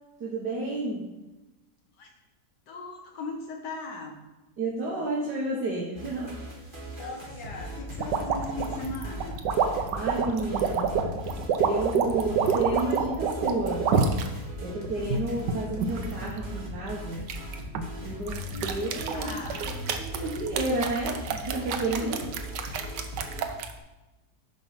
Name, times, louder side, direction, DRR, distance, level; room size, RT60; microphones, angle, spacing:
voice 1, 0.2-1.1 4.6-6.3 9.9-10.9 11.6-13.9 14.6-17.3 18.0-19.3 20.0-22.1, right 2 dB, 70° right, -4 dB, 1.9 m, -31 dB
voice 2, 2.7-4.2 7.0-9.4 18.5-19.7 21.9-22.2, left 3 dB, 80° left, 2 dB, 1.7 m, -39 dB
sound 1, 6.0-23.4, equal, 30° right, 1.8 m, -39 dB
sound 2, 8.0-14.3 14.8-16.1 17.3-17.9 18.3-23.7, right 7 dB, 90° right, 1.4 m, -27 dB
9.9 x 5.2 x 5.8 m, 1.1 s
omnidirectional pair, 1.8 m